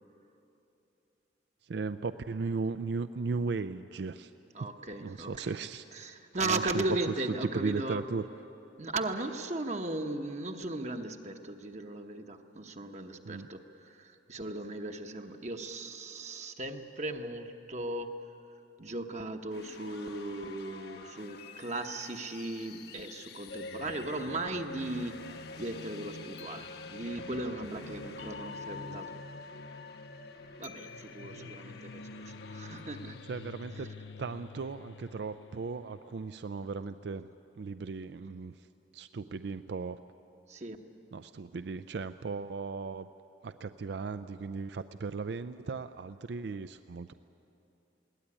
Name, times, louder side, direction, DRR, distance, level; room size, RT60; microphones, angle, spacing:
voice 1, 1.7-4.3 5.0-5.8 6.4-7.1 7.4-8.2 13.3-13.5 28.9-29.0 31.4-31.5 33.3-33.9 34.2-37.3 37.6-38.5 38.9-40.0 41.1-43.1 43.4-47.1, right 4 dB, 65° right, 12 dB, 0.4 m, -36 dB
voice 2, 4.5-5.5 5.9-8.1 8.8-18.1 18.8-29.1 30.6-32.0 32.5-33.2 33.7-33.9 40.5-40.8, right 2 dB, 40° right, 4 dB, 1.1 m, -37 dB
sound 1, 19.5-33.6, left 5 dB, 60° left, 1.2 m, -51 dB
sound 2, 23.5-36.5, left 3 dB, 75° left, 0.6 m, -46 dB
21.5 x 17.5 x 9.9 m, 3.0 s
head